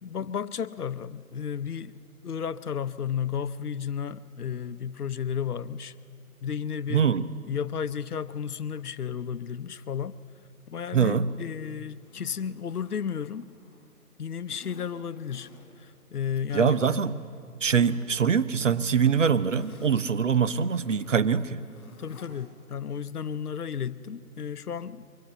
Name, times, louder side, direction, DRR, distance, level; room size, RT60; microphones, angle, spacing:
voice 1, 0.0-1.9 2.2-5.9 6.4-7.0 7.5-10.2 10.7-13.5 14.2-15.5 15.8-17.2 22.0-25.1, left 7 dB, 80° left, 0.8 m, -33 dB
voice 2, 6.9-7.3 10.9-11.3 16.5-17.1 17.6-21.6, right 6 dB, 55° right, 0.7 m, -23 dB
Zipper (clothing), 12.0-13.9 14.5-15.9 16.2-17.0 17.5-18.2 18.5-22.3 22.6-22.7, left 3 dB, 10° left, 2.9 m, -53 dB
22.5 x 14.5 x 8.9 m
figure-of-eight pair, 165°, 45 cm